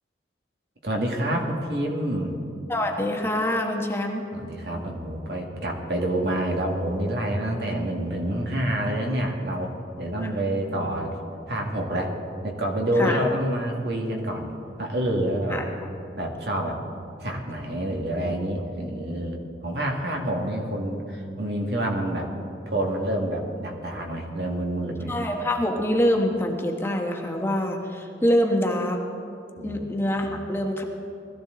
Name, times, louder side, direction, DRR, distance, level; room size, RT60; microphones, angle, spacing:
voice 1, 0.8-2.3 4.3-11.2 11.5-12.1 12.4-14.5 14.8-15.6 16.2-16.8 17.2-19.4 19.6-22.3 22.7-25.1 29.6-30.0 30.3-30.4, right 1 dB, 65° right, 1 dB, 2.0 m, -27 dB
voice 2, 2.7-4.2 10.2-10.3 13.0-13.2 15.5-15.6 25.1-29.0 29.6-30.8, left 1 dB, 15° left, 1 dB, 1.1 m, -25 dB
20.5 x 14.0 x 3.9 m, 2.7 s
head